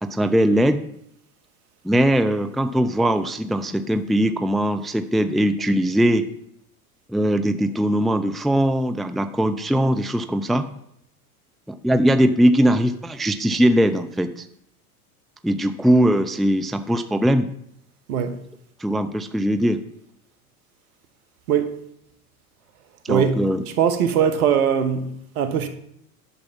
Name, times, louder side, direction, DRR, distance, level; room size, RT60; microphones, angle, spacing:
voice 1, 0.0-0.8 1.8-6.3 7.1-10.6 11.7-14.5 15.4-17.5 18.8-19.8 23.0-23.6, equal, ahead, 0.5 m, -20 dB
voice 2, 23.1-23.4 23.8-25.7, right 7 dB, 70° right, 1.6 m, -21 dB
11.0 x 6.8 x 5.3 m
hypercardioid pair, 85°, 45 cm